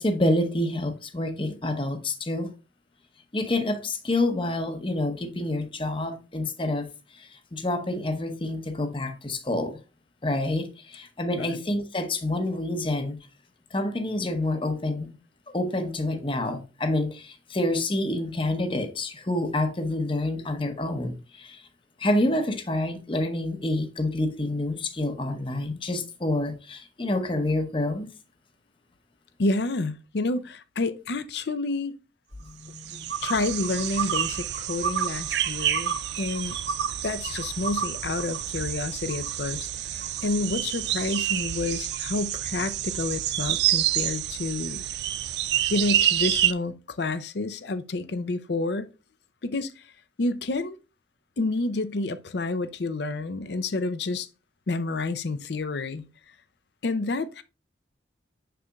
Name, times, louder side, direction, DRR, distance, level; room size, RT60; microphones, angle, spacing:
voice 1, 0.0-2.5 3.3-6.9 7.1-9.8 10.2-13.2 13.7-15.1 15.5-21.6 22.0-28.1 32.5-33.1, left 1 dB, 25° left, 0.8 m, -28 dB
voice 2, 29.4-31.9 33.2-36.6 37.0-44.8 45.7-48.9 49.4-49.9 50.2-50.8 51.4-54.3 54.7-56.0 56.8-57.4, left 3 dB, 60° left, 0.5 m, -29 dB
sound 1, 32.7-46.5, right 11 dB, 60° right, 0.4 m, -28 dB
6.7 x 6.4 x 2.3 m
head